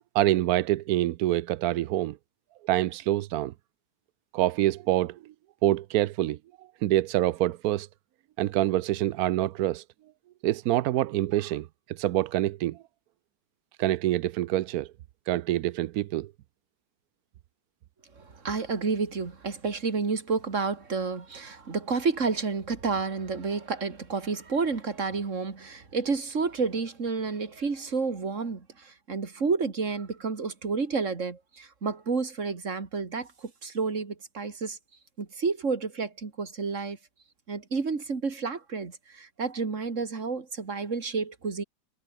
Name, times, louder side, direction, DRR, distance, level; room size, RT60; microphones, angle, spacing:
voice 1, 0.1-2.2 2.6-3.5 4.3-5.2 5.6-6.4 6.8-7.9 8.4-9.8 10.4-12.8 13.8-14.9 15.3-16.3, right 14 dB, 70° right, 0.9 m, -26 dB
voice 2, 18.2-34.8 35.2-37.0 37.5-41.6, right 4 dB, 40° right, 2.6 m, -30 dB
omnidirectional pair, 2.0 m